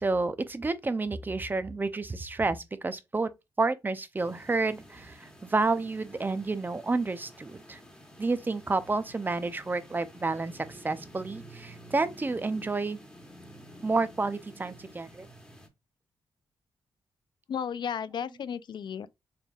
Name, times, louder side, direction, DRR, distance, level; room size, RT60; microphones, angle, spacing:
voice 1, 0.0-3.3 3.6-7.8 8.2-13.0 13.8-15.3, right 3 dB, 20° right, 0.5 m, -30 dB
sound 1, 4.2-15.7, equal, 5° left, 1.4 m, -50 dB
voice 2, 17.5-19.1, left 8 dB, 60° left, 0.4 m, -34 dB
4.2 x 3.3 x 2.3 m
cardioid pair, 85°, 9 cm